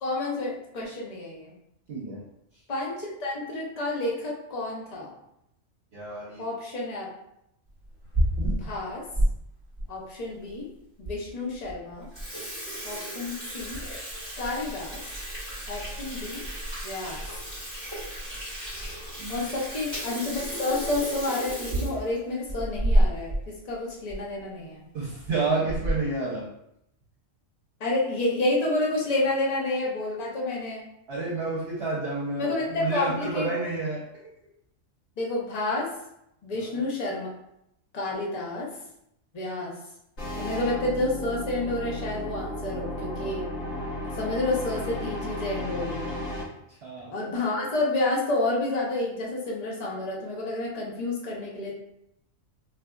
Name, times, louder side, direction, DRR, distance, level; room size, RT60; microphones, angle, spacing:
voice 1, 0.0-1.5 2.7-5.1 6.4-7.1 8.6-9.0 9.9-10.7 11.0-12.1 12.8-13.8 14.4-15.0 15.7-16.4 16.8-17.2 19.3-23.4 23.7-24.8 27.8-30.9 32.4-33.5 35.2-35.8 36.4-37.3 37.9-38.7 39.3-39.7 40.4-43.5 44.2-46.2 47.1-51.7, left 2 dB, 40° left, -3 dB, 0.7 m, -29 dB
voice 2, 1.9-2.2 5.9-6.4 19.2-19.5 24.9-26.5 31.1-34.3 36.5-36.7 46.8-47.1, right 3 dB, 55° right, -6 dB, 0.9 m, -30 dB
Water tap faucet / Sink (filling or washing), 7.8-9.3 9.8-9.9 10.6-10.7 11.0-11.1 11.5-11.7 12.0-23.4 23.7-23.8 24.1-24.2 25.0-25.3 25.7-26.1, right 1 dB, 20° left, 1.4 m, -30 dB
sound 1, 40.2-46.4, left 1 dB, 90° left, 2.1 m, -34 dB
3.9 x 2.7 x 2.3 m, 0.80 s
omnidirectional pair, 1.3 m